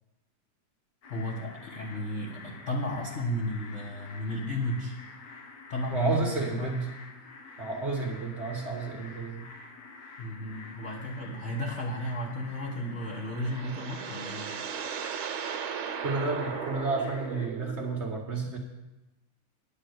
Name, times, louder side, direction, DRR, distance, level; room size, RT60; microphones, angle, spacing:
sound 1, 1.0-17.5, left 4 dB, 80° left, 0.9 m, -48 dB
voice 1, 1.1-5.0 5.7-6.7 10.2-14.6, equal, 50° left, -3 dB, 0.8 m, -33 dB
voice 2, 5.9-6.9 7.6-9.4 16.0-18.6, right 3 dB, 40° right, 0 dB, 0.9 m, -31 dB
sound 2, 12.9-18.0, right 7 dB, 70° right, 1.9 m, -37 dB
10.5 x 6.1 x 8.0 m, 1.0 s
omnidirectional pair, 3.5 m